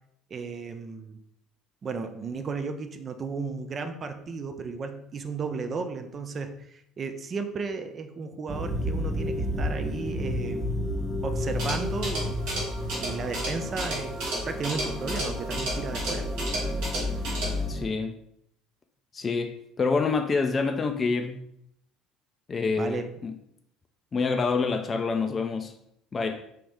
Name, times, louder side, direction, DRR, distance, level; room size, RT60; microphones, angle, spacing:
voice 1, 0.3-1.2 1.8-10.8 11.2-12.4 13.0-14.2 14.4-16.3 22.8-23.1, right 4 dB, 35° right, 0.4 m, -34 dB
sound 1, 8.5-17.9, left 1 dB, 15° right, 0.9 m, -31 dB
sound 2, 11.4-17.6, right 1 dB, 65° right, 1.5 m, -34 dB
voice 2, 17.7-18.1 19.1-21.4 22.5-23.3 24.1-25.7 26.1-26.5, left 4 dB, 30° left, 0.4 m, -27 dB
4.8 x 3.0 x 3.4 m
figure-of-eight pair, 60°, 0 cm